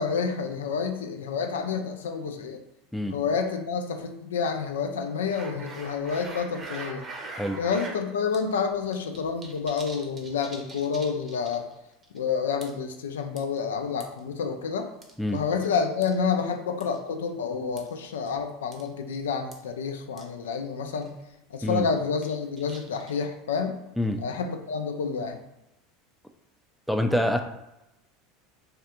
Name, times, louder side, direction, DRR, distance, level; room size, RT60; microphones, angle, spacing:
voice 1, 0.0-2.6 3.1-7.0 7.6-11.6 12.1-14.9 15.3-21.1 21.5-23.8 24.2-25.4, left 5 dB, 80° left, 5 dB, 0.3 m, -29 dB
sound 1, 5.3-8.0 8.3-8.4 8.7-11.7 12.0-12.2 12.6-12.9 13.4-14.2 15.0-15.7 16.0-16.2 16.8-17.0 17.8-17.9 18.3-18.4 18.7-18.9 19.1-19.2 19.5-19.6 20.2-20.3 20.5-20.6 21.0-21.2 21.7-23.3, right 2 dB, 30° right, 0.7 m, -42 dB
voice 2, 26.9-27.4, left 1 dB, 5° left, 5 dB, 0.3 m, -26 dB
3.3 x 2.3 x 2.8 m, 0.92 s
hypercardioid pair, 80°, 0 cm